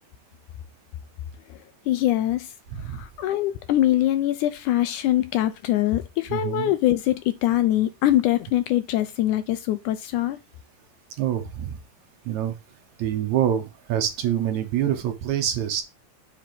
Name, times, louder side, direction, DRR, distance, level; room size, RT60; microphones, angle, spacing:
voice 1, 1.9-2.5 2.9-10.4, left 13 dB, 80° left, 1.9 m, -23 dB
voice 2, 6.3-6.7 11.2-11.7 12.3-12.5 13.0-15.8, right 10 dB, 70° right, 2.0 m, -26 dB
7.5 x 3.3 x 5.9 m
omnidirectional pair, 3.8 m